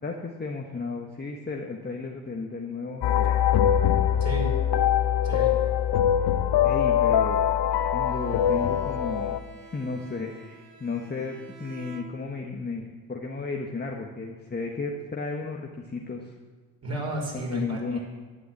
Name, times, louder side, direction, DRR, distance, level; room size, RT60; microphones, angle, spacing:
voice 1, 0.0-3.4 6.6-7.4 7.9-16.3 17.3-18.0, left 4 dB, 20° left, 1 dB, 1.4 m, -34 dB
sound 1, 3.0-9.4, left 9 dB, 55° left, 0.9 m, -23 dB
voice 2, 4.2-4.6 5.2-5.6 16.8-18.0, right 1 dB, 30° right, -1 dB, 5.3 m, -32 dB
Bowed string instrument, 8.0-12.6, right 3 dB, 85° right, 1.5 m, -50 dB
12.0 x 9.3 x 7.4 m, 1.4 s
hypercardioid pair, 60°, 50 cm